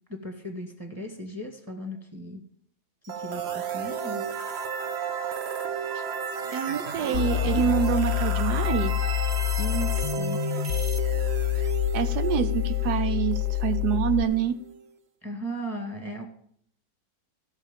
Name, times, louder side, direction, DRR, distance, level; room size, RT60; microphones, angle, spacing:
voice 1, 0.1-2.4 3.2-4.2 9.6-10.4 15.2-16.2, right 1 dB, 15° right, 2 dB, 1.7 m, -36 dB
sound 1, 3.1-14.9, right 6 dB, 50° right, 1.0 m, -33 dB
voice 2, 6.5-8.9 11.9-14.5, right 9 dB, 85° right, 10 dB, 1.3 m, -26 dB
sound 2, 7.1-14.2, left 18 dB, 85° left, 1.2 m, -27 dB
15.5 x 6.4 x 5.3 m, 0.63 s
omnidirectional pair, 1.7 m